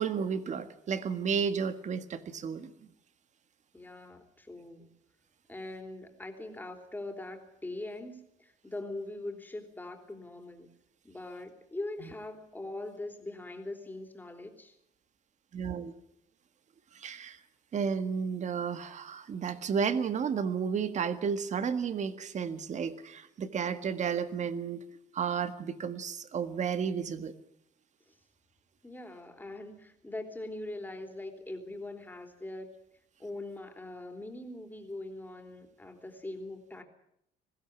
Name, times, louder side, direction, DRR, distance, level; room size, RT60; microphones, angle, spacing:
voice 1, 0.0-2.7 15.5-15.9 16.9-17.4 17.7-24.8 25.1-27.3, right 6 dB, 45° right, 11 dB, 1.7 m, -32 dB
voice 2, 3.7-4.9 5.5-10.7 11.0-14.8 28.1-28.2 28.8-32.7 33.2-36.8, left 2 dB, 10° left, 5 dB, 3.4 m, -42 dB
21.0 x 16.0 x 9.9 m, 0.78 s
cardioid pair, 110°, 17 cm